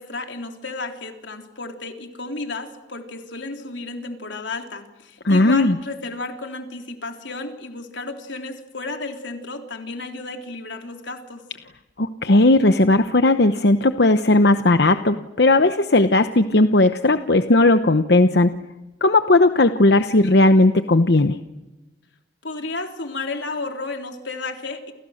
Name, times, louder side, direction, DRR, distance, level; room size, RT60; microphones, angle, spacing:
voice 1, 0.0-11.4 22.4-24.9, left 3 dB, 85° left, 4 dB, 3.6 m, -32 dB
voice 2, 5.2-5.8 12.0-18.6 19.0-21.4, left 2 dB, 65° left, 9 dB, 1.0 m, -16 dB
29.5 x 29.0 x 6.5 m, 1.0 s
head